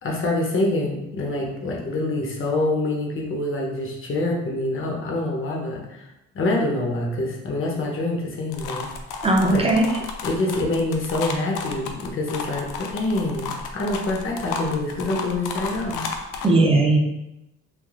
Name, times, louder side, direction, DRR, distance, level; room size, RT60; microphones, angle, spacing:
voice 1, 0.0-6.1 6.3-8.9 9.5-9.6 10.2-16.0, left 2 dB, 45° left, -1 dB, 0.8 m, -26 dB
sound 1, 8.5-16.5, left 5 dB, 85° left, 0.5 m, -33 dB
voice 2, 9.2-10.0 16.4-17.0, right 2 dB, 20° right, 0 dB, 0.6 m, -18 dB
3.4 x 2.5 x 2.4 m, 0.92 s
cardioid pair, 90°, 30 cm